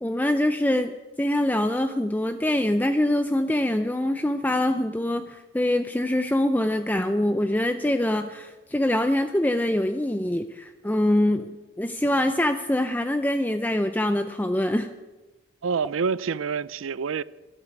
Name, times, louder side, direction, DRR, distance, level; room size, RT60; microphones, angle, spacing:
voice 1, 0.0-14.9, left 1 dB, 10° left, 0.5 m, -24 dB
voice 2, 15.6-17.2, right 5 dB, 90° right, 0.5 m, -27 dB
13.0 x 12.0 x 8.3 m
head